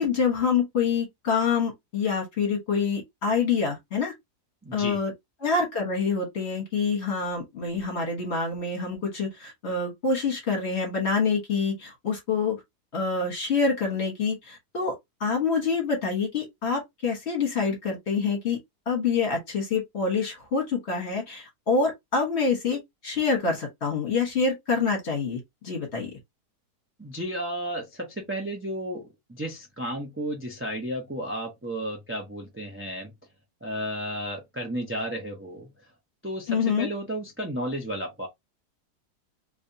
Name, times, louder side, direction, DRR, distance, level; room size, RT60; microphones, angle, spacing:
voice 1, 0.0-4.1 4.7-5.1 5.4-12.6 12.9-18.6 18.9-26.1 36.5-36.9, left 5 dB, 45° left, 1.5 m, -26 dB
voice 2, 4.6-5.0 27.0-33.1 33.6-35.7 36.2-38.3, equal, 10° right, 0.7 m, -33 dB
3.4 x 3.0 x 2.7 m
omnidirectional pair, 1.7 m